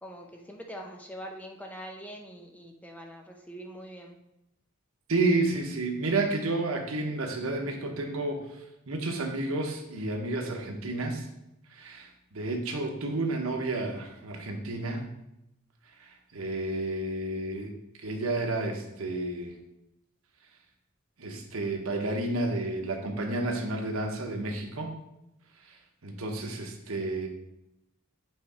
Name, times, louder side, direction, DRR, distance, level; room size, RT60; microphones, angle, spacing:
voice 1, 0.0-4.2, equal, 5° left, 2 dB, 0.7 m, -43 dB
voice 2, 5.1-11.2 11.7-15.1 16.0-17.7 18.0-19.6 21.2-24.9 25.7-25.8 26.0-27.3, right 2 dB, 90° right, 3 dB, 1.0 m, -31 dB
7.8 x 3.6 x 4.3 m, 0.87 s
head